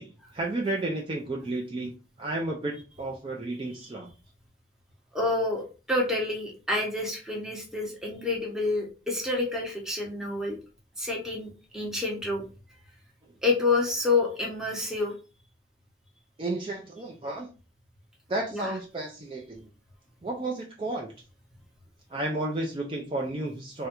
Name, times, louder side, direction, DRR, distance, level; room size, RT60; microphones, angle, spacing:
voice 1, 0.0-4.1 16.4-17.5 18.3-19.6 20.2-21.1 22.1-23.9, right 2 dB, 30° right, 0 dB, 0.4 m, -32 dB
voice 2, 5.1-5.6 5.9-10.6 11.0-12.4 13.4-15.1 18.5-18.7, left 3 dB, 5° right, -2 dB, 0.7 m, -28 dB
3.5 x 2.2 x 2.8 m, 0.35 s
head